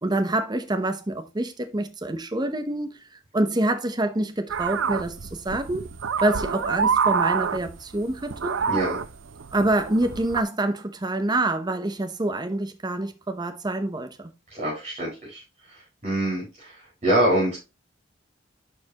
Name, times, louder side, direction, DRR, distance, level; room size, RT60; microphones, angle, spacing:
voice 1, 0.0-2.9 3.3-5.9 6.2-8.6 9.5-14.3, right 1 dB, 20° right, 0.8 m, -26 dB
sound 1, 4.5-10.4, right 6 dB, 85° right, 0.6 m, -27 dB
voice 2, 8.7-9.0 14.5-15.4 15.7-17.6, right 1 dB, 35° right, 4.9 m, -25 dB
11.0 x 4.5 x 2.9 m
head